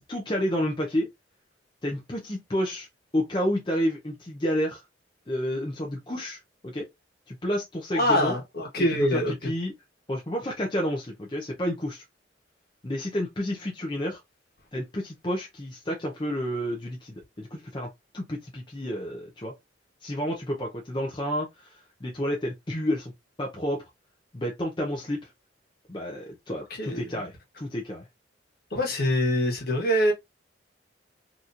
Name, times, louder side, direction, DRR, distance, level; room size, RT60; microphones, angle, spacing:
voice 1, 0.1-1.1 1.8-2.9 3.1-4.8 5.3-6.4 6.6-6.9 7.3-8.3 8.8-8.9 9.1-9.7 10.1-12.0 12.8-14.2 14.7-17.9 18.1-19.5 20.0-23.1 23.4-23.8 24.3-25.2 25.9-28.0, equal, 25° left, 0.6 m, -30 dB
voice 2, 8.0-9.5 26.8-27.2 28.7-30.1, equal, 55° left, 1.3 m, -24 dB
4.0 x 3.0 x 2.5 m
head